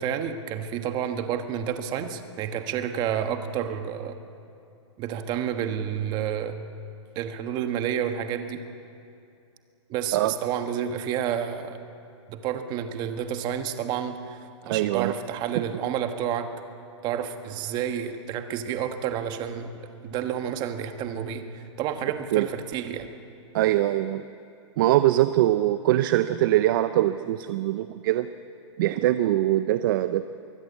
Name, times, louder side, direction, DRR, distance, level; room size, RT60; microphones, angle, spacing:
voice 1, 0.0-4.2 5.0-6.6 7.1-8.6 9.9-11.8 12.3-16.5 17.0-19.7 20.0-23.1, right 9 dB, 25° right, 8 dB, 1.4 m, -30 dB
voice 2, 14.7-15.1 22.3-22.5 23.5-24.2 24.8-28.3 28.8-30.3, right 14 dB, 45° right, 12 dB, 0.6 m, -22 dB
23.5 x 17.0 x 8.4 m, 2.6 s
hypercardioid pair, 150°, 16 cm